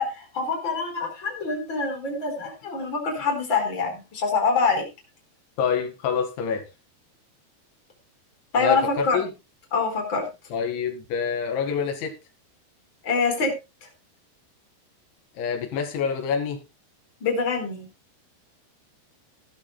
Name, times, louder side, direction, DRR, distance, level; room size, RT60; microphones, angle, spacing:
voice 1, 0.0-4.8 8.5-9.2 9.7-10.3 13.0-13.5 17.2-17.9, left 4 dB, 25° left, 3 dB, 4.7 m, -25 dB
voice 2, 5.6-6.7 8.6-9.3 10.5-12.1 15.4-16.6, left 7 dB, 85° left, 4 dB, 4.3 m, -26 dB
18.0 x 12.5 x 2.3 m, 0.27 s
omnidirectional pair, 5.2 m